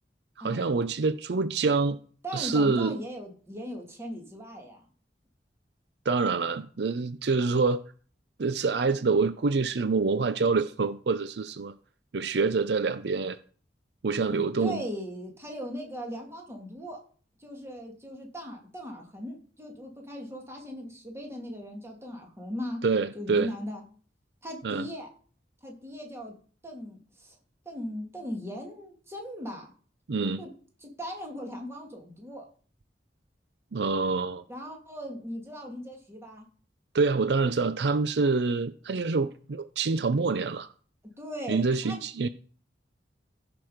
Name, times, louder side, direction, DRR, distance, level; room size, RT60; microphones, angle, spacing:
voice 1, 0.4-2.0 2.3-3.0 6.1-7.9 8.4-11.7 12.1-13.4 14.0-14.8 22.8-23.5 24.6-24.8 30.1-30.4 33.7-34.4 36.9-40.7 41.5-42.3, right 4 dB, 65° right, 0.5 m, -26 dB
voice 2, 2.2-4.9 7.3-7.5 14.2-17.0 17.4-22.8 23.1-23.8 24.4-25.1 25.6-26.3 26.6-27.4 27.7-29.7 30.4-30.5 30.8-32.5 34.5-36.5 41.2-42.0, equal, 15° right, 2.5 m, -38 dB
15.0 x 6.1 x 5.0 m
head